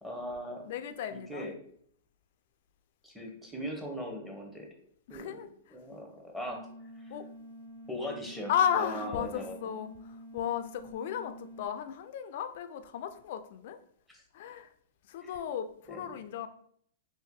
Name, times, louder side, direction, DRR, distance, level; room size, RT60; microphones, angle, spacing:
voice 1, 0.0-0.6 1.1-1.5 3.0-4.7 5.1-5.4 5.7-6.6 7.0-7.1 7.9-9.7 15.2-15.3 15.9-16.1, equal, ahead, 0 dB, 0.8 m, -39 dB
voice 2, 0.6-1.5 5.1-5.5 7.1-7.2 8.5-13.8 14.3-14.7 15.1-16.5, left 9 dB, 60° left, 9 dB, 0.4 m, -34 dB
sound 1, 6.5-11.7, equal, 55° right, 0.7 m, -48 dB
2.7 x 2.6 x 3.6 m, 0.64 s
hypercardioid pair, 130°, 0 cm